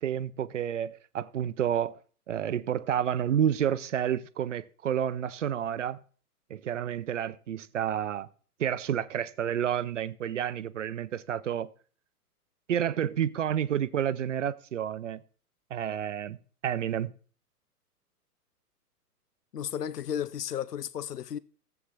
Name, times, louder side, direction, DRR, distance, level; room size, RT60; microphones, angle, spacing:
voice 1, 0.0-2.0 2.3-6.0 6.5-8.3 8.6-11.7 12.7-15.2 15.7-16.4 16.6-17.1, right 9 dB, 50° right, 0.6 m, -30 dB
voice 2, 19.5-21.4, left 9 dB, 85° left, 0.5 m, -33 dB
15.5 x 8.2 x 2.3 m
figure-of-eight pair, 115°, 47 cm